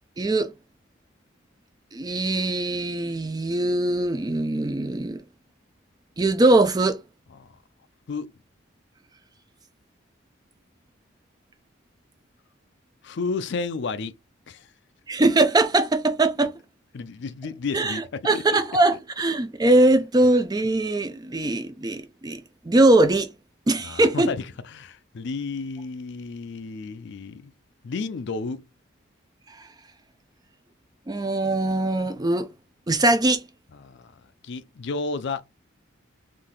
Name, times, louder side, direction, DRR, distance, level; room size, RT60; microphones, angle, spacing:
voice 1, 0.2-0.5 1.9-5.2 6.2-7.0 15.1-16.5 17.7-23.3 23.7-24.3 31.1-32.5 32.9-33.4, right 2 dB, 20° right, 0.4 m, -21 dB
voice 2, 13.0-14.1 14.5-14.7 16.9-18.6 23.8-27.5 27.8-28.7 33.7-34.1 34.4-35.4, left 4 dB, 60° left, 0.4 m, -32 dB
3.7 x 2.7 x 3.7 m
head